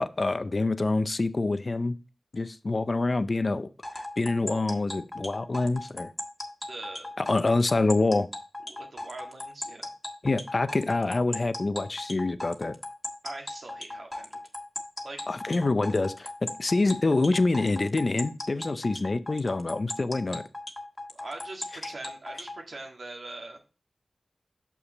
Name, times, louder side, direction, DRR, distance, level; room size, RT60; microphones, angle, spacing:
voice 1, 0.0-1.9 2.3-3.7 3.9-6.1 7.2-8.3 10.2-12.7 15.3-20.4, left 3 dB, 60° left, 0.5 m, -26 dB
sound 1, 3.8-22.6, left 1 dB, 25° left, 1.5 m, -37 dB
voice 2, 6.7-7.1 8.7-9.9 13.2-14.4 15.0-15.2 21.1-23.6, right 2 dB, 85° right, 1.8 m, -42 dB
6.4 x 5.8 x 4.0 m
wide cardioid pair, 50°, 0 cm